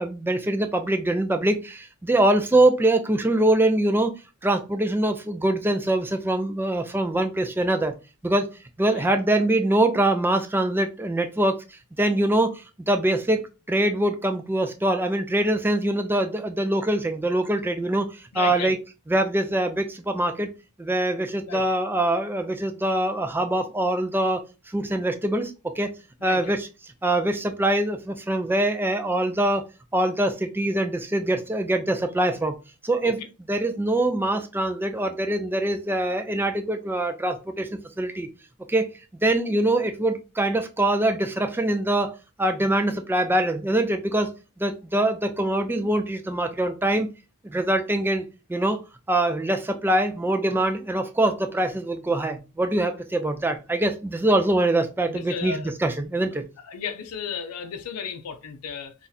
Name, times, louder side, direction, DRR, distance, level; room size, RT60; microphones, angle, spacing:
voice 1, 0.0-4.1 4.4-7.9 8.2-8.5 8.8-11.6 12.0-12.5 12.9-18.1 18.3-18.8 19.1-20.5 20.8-24.4 24.7-25.9 26.2-26.7 27.0-29.6 29.9-32.5 32.8-38.3 38.7-38.9 39.2-44.3 44.6-47.1 47.5-48.8 49.1-56.5, right 1 dB, 10° right, 0.3 m, -23 dB
voice 2, 18.3-18.7 21.5-21.6 26.2-26.6 33.0-33.3 55.1-55.7 56.2-56.3 56.6-58.9, left 6 dB, 85° left, 0.5 m, -34 dB
2.7 x 2.4 x 3.9 m
head